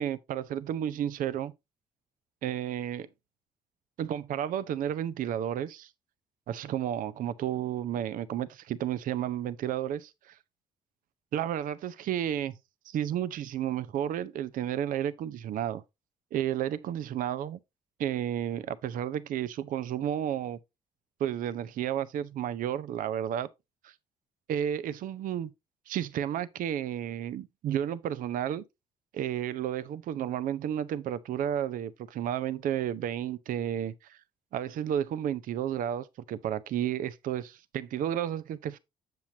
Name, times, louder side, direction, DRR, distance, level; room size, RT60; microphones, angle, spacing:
voice 1, 0.0-1.5 2.4-3.1 4.0-5.9 6.5-10.4 11.3-12.5 12.9-15.8 16.3-17.6 18.0-20.6 21.2-23.5 23.8-23.9 24.5-25.5 25.9-28.6 29.1-34.2 34.5-38.8, right 10 dB, 50° right, 0.6 m, -32 dB
7.6 x 7.0 x 2.7 m
figure-of-eight pair, 45°, 18 cm